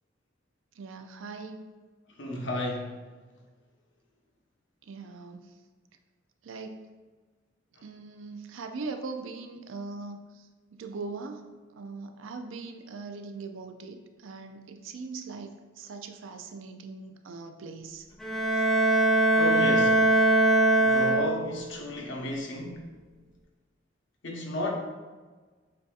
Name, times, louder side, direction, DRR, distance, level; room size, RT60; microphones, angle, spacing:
voice 1, 0.8-1.7 4.9-5.5 6.4-6.9 7.8-10.5 10.8-18.1 18.5-18.6, right 4 dB, 80° right, 5 dB, 0.4 m, -40 dB
voice 2, 2.1-2.9 19.3-20.1 20.7-22.9 24.2-24.7, left 1 dB, 65° left, -1 dB, 0.9 m, -33 dB
Bowed string instrument, 18.2-21.7, right 1 dB, ahead, 0.4 m, -22 dB
7.6 x 2.7 x 2.4 m, 1.4 s
head